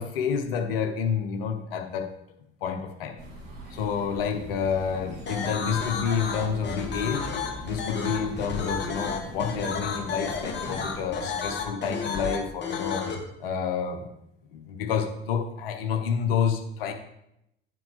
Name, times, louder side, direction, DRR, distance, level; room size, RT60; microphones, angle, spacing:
voice 1, 0.0-2.1 2.6-3.2 3.7-7.3 7.6-13.1 13.4-14.1 14.5-16.9, left 7 dB, 70° left, 6 dB, 1.1 m, -29 dB
sound 1, 3.2-11.1, right 2 dB, 60° right, 3.0 m, -42 dB
sound 2, 5.3-13.1, left 5 dB, 40° left, 2.1 m, -32 dB
9.3 x 4.8 x 4.9 m, 0.80 s
figure-of-eight pair, 55°, 29 cm